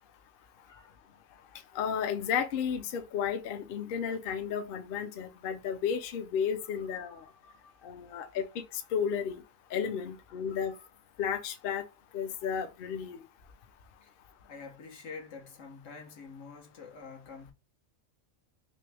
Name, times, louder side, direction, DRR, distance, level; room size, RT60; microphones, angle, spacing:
voice 1, 0.4-0.9 7.0-7.8 10.4-10.9 14.0-14.1 14.5-17.5, left 5 dB, 85° left, 1.3 m, -48 dB
voice 2, 1.7-7.2 7.8-9.4 9.7-10.7 11.2-11.8 12.1-13.2, left 7 dB, 60° left, 0.7 m, -33 dB
3.1 x 2.9 x 3.3 m
omnidirectional pair, 1.3 m